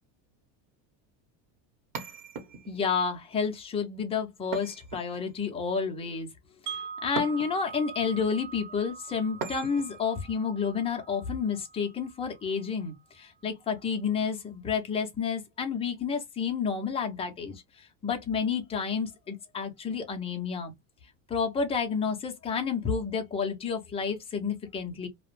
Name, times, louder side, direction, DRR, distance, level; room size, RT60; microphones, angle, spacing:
sound 1, 1.9-2.9 4.5-5.5 7.2-7.8 9.4-10.0, right 5 dB, 40° right, 0.9 m, -39 dB
voice 1, 2.7-6.3 6.6-20.7 21.3-25.1, left 6 dB, 15° left, 0.4 m, -30 dB
Wind chime, 6.7-12.6, right 6 dB, 90° right, 0.6 m, -43 dB
2.4 x 2.0 x 2.9 m
supercardioid pair, 135°, 50 cm